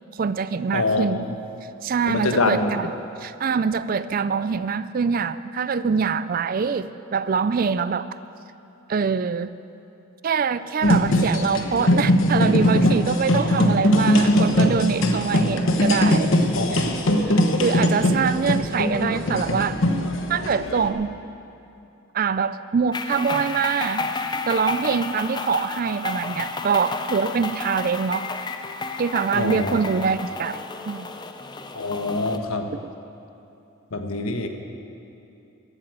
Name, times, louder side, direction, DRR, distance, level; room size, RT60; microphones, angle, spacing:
voice 1, 0.1-1.3 1.8-2.9 3.2-8.1 8.9-9.5 10.2-16.3 16.7-16.9 17.6-19.8 20.3-21.1 22.1-24.1 24.5-28.3 29.0-31.1, right 5 dB, 40° right, 15 dB, 0.3 m, -24 dB
voice 2, 0.7-1.3 2.1-2.7 16.6-16.8 29.3-29.8 31.7-32.7 33.9-34.5, left 3 dB, 80° left, 5 dB, 1.2 m, -24 dB
sound 1, 10.8-20.9, left 1 dB, 60° left, 1.1 m, -20 dB
sound 2, 22.9-32.4, left 3 dB, 20° left, 0.5 m, -31 dB
14.5 x 8.4 x 8.1 m, 2.9 s
head